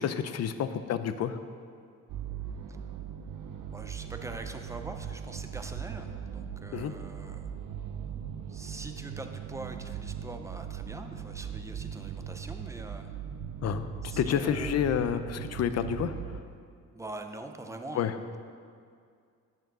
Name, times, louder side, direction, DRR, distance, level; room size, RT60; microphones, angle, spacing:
voice 1, 0.0-1.4 6.7-6.9 13.6-13.9 14.2-16.1 18.0-18.1, left 8 dB, 55° left, 11 dB, 0.5 m, -29 dB
sound 1, 2.1-16.4, right 8 dB, 75° right, 0.6 m, -39 dB
voice 2, 3.7-7.5 8.5-13.1 14.0-14.8 16.9-18.1, right 2 dB, 10° right, 6 dB, 0.4 m, -43 dB
10.5 x 4.6 x 6.1 m, 2.3 s
wide cardioid pair, 160°, 32 cm